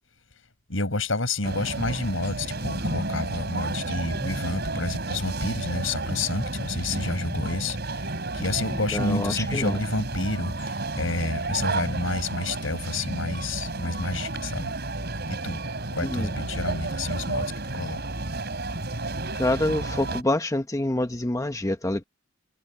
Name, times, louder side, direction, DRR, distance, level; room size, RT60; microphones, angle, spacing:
voice 1, 0.7-8.0 8.3-14.7 15.3-15.6 16.0-18.0, left 2 dB, 85° left, 5.3 m, -29 dB
sound 1, 1.4-20.2, right 2 dB, 55° right, 6.0 m, -31 dB
voice 2, 8.9-9.8 16.0-16.3 19.3-22.0, left 1 dB, 15° left, 0.9 m, -26 dB
head